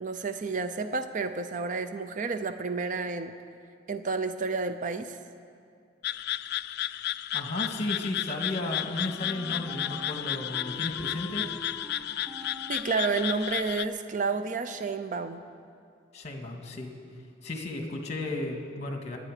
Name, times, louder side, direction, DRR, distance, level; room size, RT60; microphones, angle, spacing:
voice 1, 0.0-3.3 3.9-5.2 12.7-15.4, right 4 dB, 45° right, 9 dB, 0.6 m, -30 dB
sound 1, 6.0-13.8, left 13 dB, 60° left, 0.3 m, -33 dB
voice 2, 7.3-11.5 16.1-16.9 17.4-19.2, left 2 dB, 35° left, 3 dB, 1.8 m, -34 dB
Wind instrument woodwind instrument, 7.8-14.7, left 1 dB, 5° left, 1.5 m, -46 dB
26.5 x 9.2 x 5.0 m, 2.4 s
head